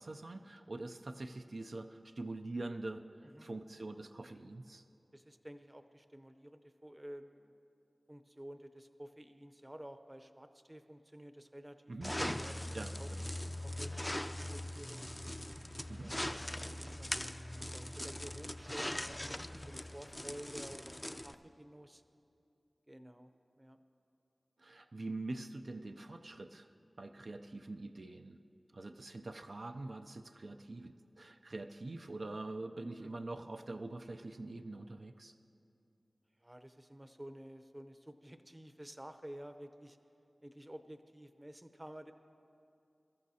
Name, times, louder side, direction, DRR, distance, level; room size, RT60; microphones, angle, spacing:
voice 1, 0.0-3.1 3.4-4.8 11.9-12.4 12.7-13.3 15.9-16.1 24.6-26.7 27.0-28.4 28.7-35.3, right 2 dB, 70° right, 5 dB, 0.4 m, -44 dB
voice 2, 5.1-7.5 8.1-13.1 13.6-15.1 15.9-22.0 22.9-23.3 23.6-23.8 33.0-33.1 36.4-40.0 40.4-42.1, right 1 dB, 20° right, 9 dB, 0.7 m, -52 dB
sound 1, 12.0-21.3, left 1 dB, 20° left, 0.4 m, -41 dB
22.5 x 13.5 x 2.8 m, 2.6 s
wide cardioid pair, 50°, 0 cm